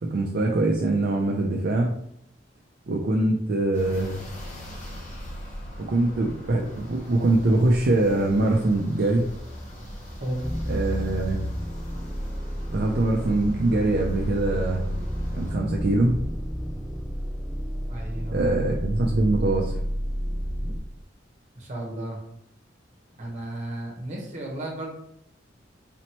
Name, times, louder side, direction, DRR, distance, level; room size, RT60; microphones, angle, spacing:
voice 1, 0.0-1.9 2.9-4.1 5.8-9.3 10.7-11.4 12.7-14.9 15.3-16.2 18.3-19.8, right 2 dB, 60° right, 1 dB, 0.4 m, -23 dB
sound 1, 3.7-15.5, equal, 45° left, 1.0 m, -40 dB
voice 2, 10.2-10.6 17.9-18.5 21.6-22.2 23.2-25.0, right 1 dB, 40° right, -1 dB, 1.1 m, -33 dB
sound 2, 10.4-20.8, equal, ahead, 0.4 m, -30 dB
4.2 x 2.9 x 3.0 m, 0.73 s
head